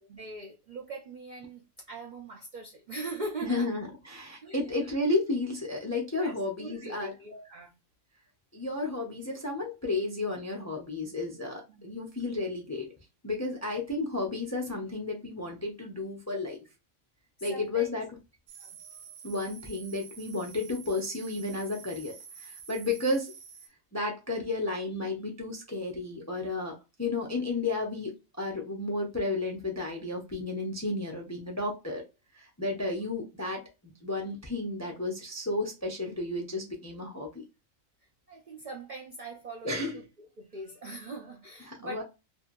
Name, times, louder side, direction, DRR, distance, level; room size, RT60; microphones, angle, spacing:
voice 1, 0.0-3.7 4.4-4.9 6.2-6.3 6.6-7.7 11.7-11.8 17.5-17.9 18.6-18.7 32.8-32.9 38.3-42.0, right 2 dB, 70° right, 0.4 m, -41 dB
voice 2, 3.4-7.1 8.5-12.9 13.2-16.6 17.4-18.1 18.8-18.9 19.2-23.3 23.9-32.0 32.4-37.4 39.6-40.0 41.6-42.0, left 2 dB, 25° left, 0.3 m, -32 dB
sound 1, 18.5-23.7, right 6 dB, 90° right, 1.3 m, -48 dB
2.7 x 2.6 x 2.5 m
omnidirectional pair, 1.4 m